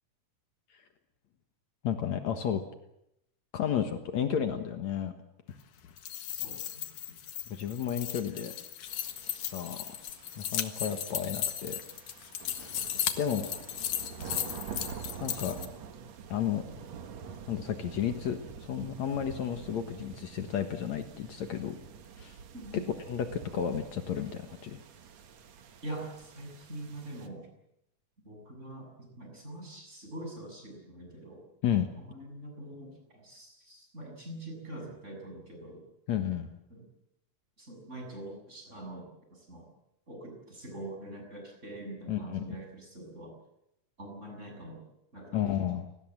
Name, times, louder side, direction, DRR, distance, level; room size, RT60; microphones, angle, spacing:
voice 1, 1.8-2.6 3.5-5.1 7.5-8.5 9.4-9.8 10.4-11.8 12.6-12.8 13.2-13.5 15.2-15.6 16.3-16.6 17.5-21.8 22.2-22.4 22.7-24.8 31.6-31.9 36.1-36.6 42.1-42.6 45.3-45.9, left 9 dB, 65° left, 7 dB, 2.6 m, -32 dB
sound 1, 5.9-15.7, left 10 dB, 85° left, 3.1 m, -36 dB
voice 2, 6.3-6.8 19.8-19.9 22.5-22.9 25.8-27.5 28.3-31.4 32.0-35.9 36.7-36.9 37.6-39.7 40.1-43.4 44.0-44.9 45.1-45.4, right 1 dB, 20° right, 2 dB, 7.4 m, -44 dB
sound 2, 8.9-27.3, right 6 dB, 60° right, 2.7 m, -47 dB
29.5 x 19.5 x 7.5 m, 0.83 s
omnidirectional pair, 3.5 m